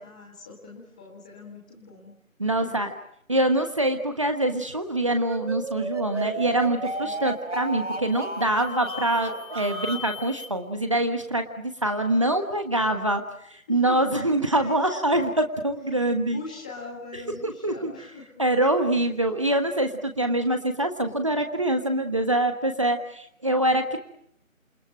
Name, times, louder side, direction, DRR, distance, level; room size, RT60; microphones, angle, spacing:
voice 1, 0.0-2.1 2.5-2.8 6.9-7.2 13.7-15.0 16.3-18.3, left 3 dB, 5° left, -2 dB, 1.8 m, -42 dB
voice 2, 2.4-2.9 3.3-13.2 13.5-16.4 17.4-17.9 18.4-24.0, right 1 dB, 25° right, 6 dB, 1.4 m, -24 dB
sound 1, 5.1-10.1, right 2 dB, 55° right, 3.9 m, -33 dB
sound 2, 6.1-6.4 6.8-7.3 7.8-10.5, left 8 dB, 40° left, 2.0 m, -42 dB
28.0 x 24.0 x 8.9 m, 0.70 s
figure-of-eight pair, 165°, 41 cm